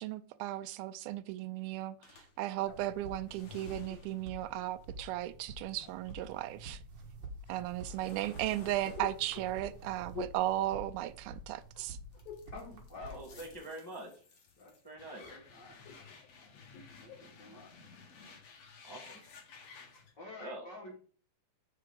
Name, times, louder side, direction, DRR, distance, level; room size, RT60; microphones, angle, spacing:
voice 1, 0.0-2.0 2.4-6.8 7.5-12.0, right 14 dB, 85° right, 2.5 m, -36 dB
sound 1, 2.0-6.3 6.6-11.6 12.1-20.1, left 4 dB, 50° left, 2.4 m, -56 dB
sound 2, 2.6-13.6, right 1 dB, 50° right, 2.1 m, -49 dB
sound 3, 2.7-4.9 5.6-6.4 7.5-11.5 11.7-12.6 12.9-13.8 14.1-17.3, left 8 dB, 80° left, 2.7 m, -51 dB
voice 2, 12.5-13.7 14.6-14.7 15.1-15.8 17.0-18.0 20.1-21.0, left 2 dB, 35° left, 2.4 m, -50 dB
voice 3, 13.1-14.1 14.8-15.2 18.8-19.2 20.4-20.7, right 1 dB, 10° left, 1.2 m, -45 dB
7.9 x 6.7 x 3.8 m
omnidirectional pair, 4.2 m